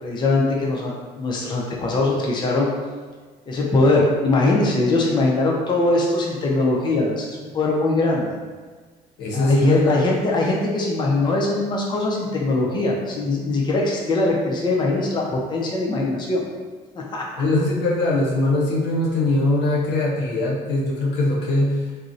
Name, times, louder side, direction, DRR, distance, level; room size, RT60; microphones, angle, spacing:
voice 1, 0.0-2.7 3.5-8.3 9.3-16.4 16.9-17.2, left 2 dB, 25° left, -2 dB, 0.4 m, -21 dB
voice 2, 9.2-10.1 17.4-21.8, left 2 dB, 85° left, -3 dB, 0.6 m, -21 dB
2.5 x 2.0 x 2.5 m, 1.4 s
cardioid pair, 110°, 17 cm